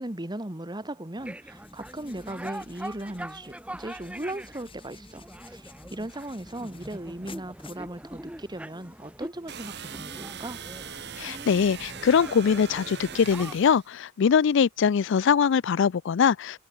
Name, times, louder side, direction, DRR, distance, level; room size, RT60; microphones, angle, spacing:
voice 1, 0.0-10.6, right 1 dB, 20° right, 1.8 m, -37 dB
sound 1, 1.2-13.6, right 1 dB, 5° right, 2.5 m, -43 dB
sound 2, 1.5-8.5, left 4 dB, 25° left, 4.1 m, -53 dB
sound 3, 9.5-13.9, right 7 dB, 55° right, 3.3 m, -40 dB
voice 2, 11.2-16.6, left 7 dB, 65° left, 0.4 m, -22 dB
head